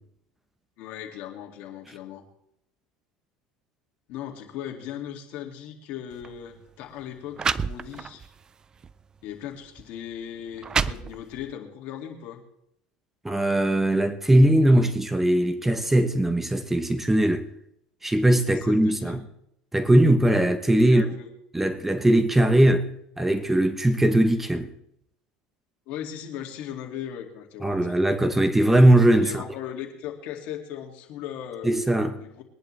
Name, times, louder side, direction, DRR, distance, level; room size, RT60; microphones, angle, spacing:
voice 1, 0.8-2.2 4.1-8.2 9.2-12.4 15.2-15.3 18.5-19.2 20.7-21.3 25.9-28.0 29.2-31.8 32.2-32.4, left 10 dB, 60° left, 2.3 m, -38 dB
sound 1, 6.1-6.3 7.0-7.1 7.4-8.3 8.8-9.0 9.8-9.9 10.4-11.5, right 5 dB, 25° right, 0.4 m, -28 dB
voice 2, 13.2-17.5 18.0-19.2 19.7-21.1 21.5-22.9 23.2-24.7 27.6-29.4 31.6-32.2, right 1 dB, 10° right, 0.9 m, -20 dB
22.0 x 10.5 x 3.3 m
supercardioid pair, 110°, 3 cm